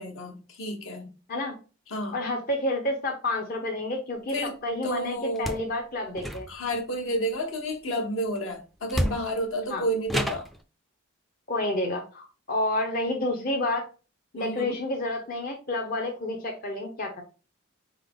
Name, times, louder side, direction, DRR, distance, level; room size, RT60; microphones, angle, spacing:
voice 1, 0.0-1.1 1.9-2.2 4.3-4.6 4.8-5.6 6.5-10.5 14.3-14.8, equal, 70° left, 1.0 m, -31 dB
voice 2, 2.1-4.4 4.6-6.5 9.7-9.8 11.5-13.9 14.3-17.2, left 1 dB, 45° left, 0.7 m, -29 dB
sound 1, 5.3-5.7 6.1-6.8 8.4-8.5 8.9-9.5 10.1-10.6, equal, ahead, 0.3 m, -30 dB
3.8 x 3.7 x 3.5 m
head